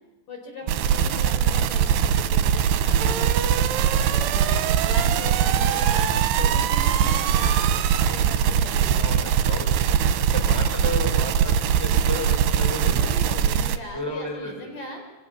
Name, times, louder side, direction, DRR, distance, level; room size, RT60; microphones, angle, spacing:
voice 1, 0.3-3.4 4.0-9.1 10.2-10.5 13.0-15.0, left 2 dB, 45° left, 3 dB, 6.1 m, -39 dB
sound 1, 0.7-13.8, right 8 dB, 70° right, 3.0 m, -21 dB
voice 2, 9.0-13.1 13.9-14.5, left 1 dB, 5° right, 2 dB, 5.3 m, -33 dB
29.0 x 25.5 x 7.4 m, 1.2 s
omnidirectional pair, 5.4 m